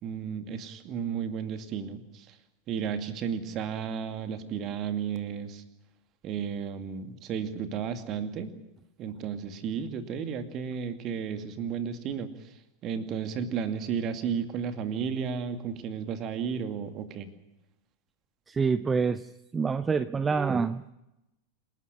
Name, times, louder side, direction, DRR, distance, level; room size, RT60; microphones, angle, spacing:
voice 1, 0.0-2.4 2.7-5.6 6.2-8.5 9.0-12.5 12.8-17.3, right 7 dB, 35° right, 9 dB, 2.3 m, -33 dB
voice 2, 18.5-20.9, right 5 dB, 15° right, 14 dB, 0.7 m, -27 dB
27.5 x 12.5 x 9.9 m, 0.91 s
figure-of-eight pair, 90°, 0 cm